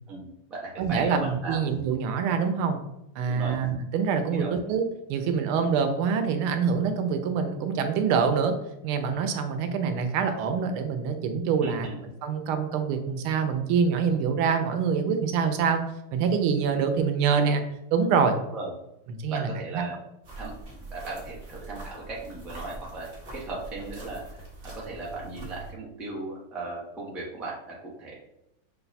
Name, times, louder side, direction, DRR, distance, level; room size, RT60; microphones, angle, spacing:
voice 1, 0.1-1.7 3.3-3.5 4.3-4.5 11.6-12.0 18.5-18.7 19.3-19.9 20.4-20.5 20.9-24.2 24.6-28.1, right 3 dB, ahead, -5 dB, 0.5 m, -37 dB
voice 2, 0.8-2.8 3.2-8.6 8.8-11.9 12.2-15.8 16.1-17.6 17.9-18.4 19.1-19.8, right 6 dB, 85° right, 7 dB, 1.5 m, -25 dB
sound 1, 20.2-25.7, right 2 dB, 40° right, 1.2 m, -43 dB
5.8 x 2.3 x 4.0 m, 0.87 s
omnidirectional pair, 2.3 m